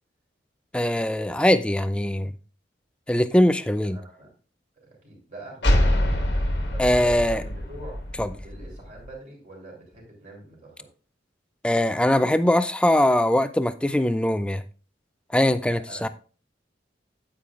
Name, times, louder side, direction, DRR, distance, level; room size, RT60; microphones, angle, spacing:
voice 1, 0.7-2.3 3.1-4.0 6.8-7.4 8.2-8.3 11.6-14.6 15.3-16.1, left 1 dB, 5° left, 0.4 m, -21 dB
voice 2, 3.8-4.3 5.0-6.0 6.7-8.1 8.4-10.9 15.7-16.1, right 2 dB, 40° right, 3.5 m, -43 dB
sound 1, 5.6-9.1, left 1 dB, 70° left, 1.5 m, -25 dB
9.2 x 8.6 x 2.4 m
head